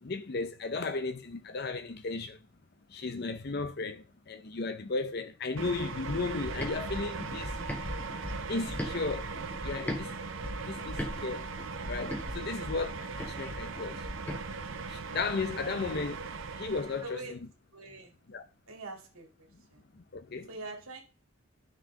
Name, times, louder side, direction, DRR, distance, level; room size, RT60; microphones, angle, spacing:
voice 1, 0.0-2.4 2.9-7.5 8.5-9.3 9.6-10.1 10.6-11.5 11.9-14.0 14.9-16.2 16.6-17.4 18.3-18.4 20.1-20.5, left 3 dB, 50° left, 0.6 m, -35 dB
sound 1, 5.6-17.2, right 4 dB, 65° right, 0.8 m, -39 dB
sound 2, 6.1-10.0 10.4-14.4, left 1 dB, 10° left, 1.2 m, -39 dB
voice 2, 17.0-17.4 17.7-18.1 18.7-19.8 20.5-21.0, right 2 dB, 80° right, 2.3 m, -44 dB
11.5 x 6.3 x 3.7 m
head